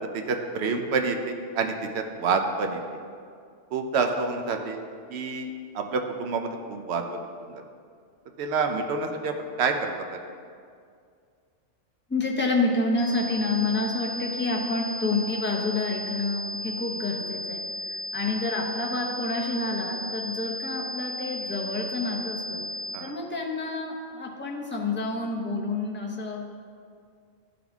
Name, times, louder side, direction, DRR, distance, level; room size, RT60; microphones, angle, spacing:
voice 1, 0.1-2.8 3.7-4.8 5.1-7.2 7.5-7.6 8.4-9.9 22.9-23.1, right 4 dB, 65° right, 4 dB, 0.8 m, -28 dB
voice 2, 12.1-17.6 17.9-22.6 23.0-26.5, left 2 dB, 10° left, -1 dB, 0.6 m, -28 dB
sound 1, 13.0-23.0, left 1 dB, 65° left, 1.0 m, -35 dB
11.5 x 3.8 x 3.5 m, 2.2 s
omnidirectional pair, 1.3 m